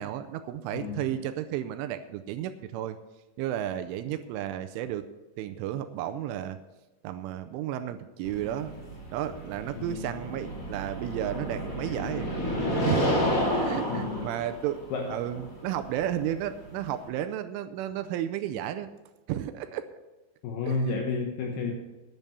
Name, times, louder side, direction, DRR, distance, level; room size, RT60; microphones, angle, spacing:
voice 1, 0.0-3.0 3.4-5.1 5.4-6.6 7.0-8.7 9.1-12.3 12.8-18.9 19.3-19.9 20.7-20.8, right 11 dB, 80° right, 10 dB, 3.0 m, -33 dB
voice 2, 0.7-1.1 9.8-10.1 13.9-14.3 14.9-15.3 20.4-21.8, left 3 dB, 75° left, 2 dB, 2.4 m, -31 dB
sound 1, 8.2-17.1, left 1 dB, 25° left, 2.0 m, -31 dB
11.0 x 10.5 x 5.6 m, 1.1 s
omnidirectional pair, 5.8 m